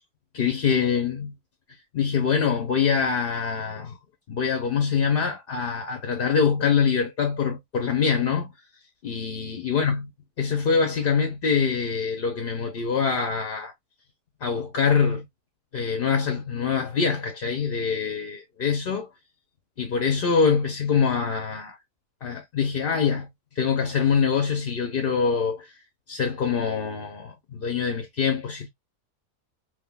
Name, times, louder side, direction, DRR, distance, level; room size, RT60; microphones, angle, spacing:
voice 1, 0.3-1.3 1.9-4.0 4.3-8.5 9.0-10.0 10.4-13.7 14.4-15.3 15.7-19.1 19.8-21.8 22.2-23.3 23.5-25.7 26.1-28.7, left 6 dB, 50° left, 0.7 m, -24 dB
3.6 x 3.0 x 2.2 m
omnidirectional pair, 1.5 m